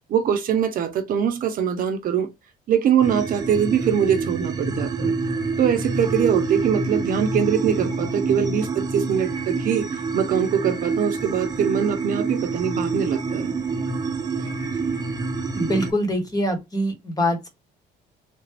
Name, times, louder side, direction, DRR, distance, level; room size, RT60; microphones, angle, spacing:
voice 1, 0.1-2.3 2.7-5.1 5.6-13.6 14.4-14.5, right 8 dB, 55° right, 0.8 m, -23 dB
sound 1, 3.0-15.9, right 4 dB, 25° right, 0.8 m, -27 dB
voice 2, 15.5-17.5, equal, 20° left, 1.4 m, -24 dB
3.3 x 2.5 x 3.3 m
cardioid pair, 110°, 17 cm